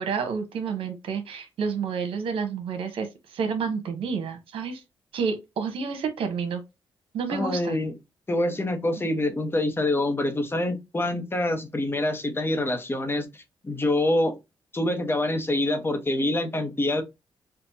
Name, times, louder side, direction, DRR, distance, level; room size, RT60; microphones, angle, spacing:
voice 1, 0.0-4.8 5.1-6.6 7.1-7.8, right 5 dB, 80° right, 1.0 m, -29 dB
voice 2, 7.3-7.9 8.3-14.4 14.7-17.0, left 1 dB, 25° left, 1.0 m, -26 dB
4.4 x 2.5 x 2.7 m
cardioid pair, 65°, 9 cm